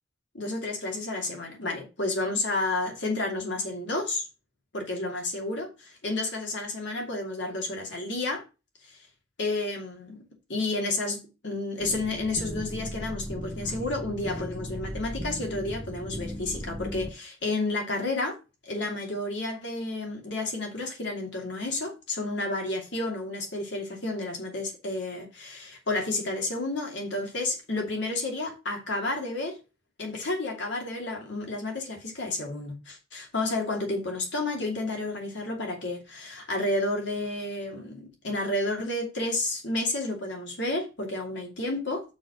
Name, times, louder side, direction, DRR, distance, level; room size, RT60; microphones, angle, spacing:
voice 1, 0.3-4.3 4.7-8.4 9.4-10.2 10.5-18.4 18.7-29.6 30.0-42.0, left 2 dB, 65° left, 2.7 m, -31 dB
sound 1, 11.8-17.1, equal, 5° right, 0.8 m, -37 dB
6.2 x 5.0 x 6.5 m
head